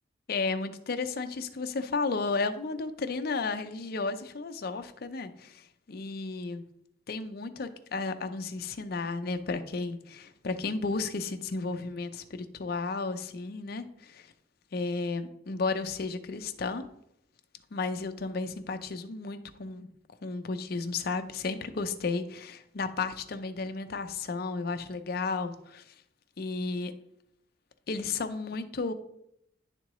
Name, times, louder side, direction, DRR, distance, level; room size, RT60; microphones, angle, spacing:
voice 1, 0.3-6.6 7.1-14.3 14.7-16.9 17.7-19.9 20.2-25.8 26.4-26.9 27.9-28.9, left 4 dB, 50° left, 9 dB, 0.5 m, -33 dB
10.5 x 3.7 x 3.0 m, 0.76 s
head